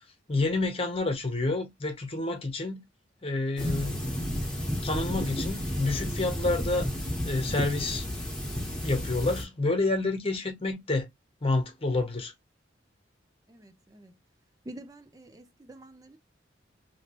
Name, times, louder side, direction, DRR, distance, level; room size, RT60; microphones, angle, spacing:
voice 1, 0.3-2.8 3.2-4.2 4.8-6.9 7.2-8.1 8.8-11.1 11.4-12.3, left 2 dB, 30° left, 1.0 m, -29 dB
sound 1, 3.6-9.4, equal, 5° left, 1.1 m, -32 dB
voice 2, 13.5-14.1 14.7-16.2, right 1 dB, 20° right, 0.4 m, -47 dB
2.9 x 2.9 x 2.9 m
head